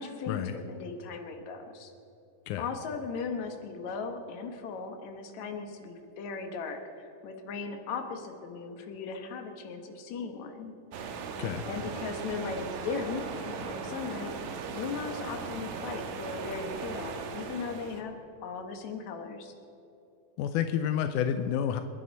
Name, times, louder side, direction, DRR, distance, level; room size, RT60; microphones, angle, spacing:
voice 1, 0.0-1.9 2.6-10.7 11.7-18.2 18.4-19.5, left 5 dB, 60° left, 5 dB, 2.4 m, -38 dB
sound 1, 10.9-18.0, right 5 dB, 70° right, 2.2 m, -38 dB
voice 2, 20.4-21.8, left 9 dB, 80° left, 8 dB, 1.8 m, -29 dB
27.5 x 11.0 x 4.1 m, 2.8 s
omnidirectional pair, 4.1 m